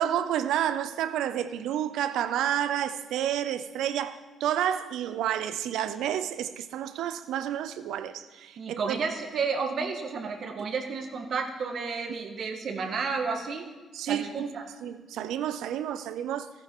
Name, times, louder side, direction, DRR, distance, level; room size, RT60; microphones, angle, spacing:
voice 1, 0.0-9.0 13.9-14.5 14.8-16.5, right 10 dB, 85° right, 0.6 m, -30 dB
voice 2, 8.6-13.7 14.0-14.6, right 5 dB, 60° right, 1.5 m, -31 dB
14.5 x 10.0 x 3.8 m
cardioid pair, 90°, 0 cm